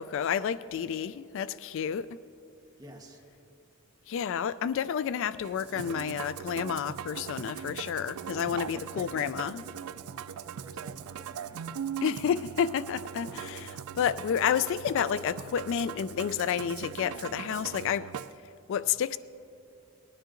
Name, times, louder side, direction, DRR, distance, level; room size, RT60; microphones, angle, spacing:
voice 1, 0.0-2.2 4.1-9.6 12.0-18.1 18.7-19.2, left 8 dB, 60° left, 15 dB, 0.3 m, -30 dB
voice 2, 2.8-3.2 8.3-9.5 10.0-10.1 10.4-11.6, equal, 20° right, 1 dB, 1.3 m, -50 dB
Musical instrument, 5.4-18.3, right 8 dB, 90° right, 0.4 m, -40 dB
sound 1, 10.1-16.5, right 3 dB, 70° right, 2.0 m, -59 dB
19.5 x 10.0 x 3.8 m, 2.8 s
head